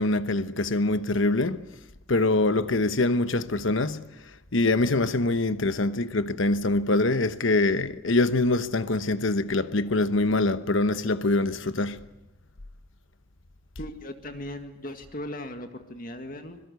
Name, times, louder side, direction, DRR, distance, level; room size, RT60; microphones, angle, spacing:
voice 1, 0.0-1.6 2.1-12.0, left 2 dB, 70° left, 1.1 m, -24 dB
voice 2, 13.8-16.6, left 1 dB, 40° left, 1.9 m, -38 dB
25.0 x 22.5 x 8.2 m
head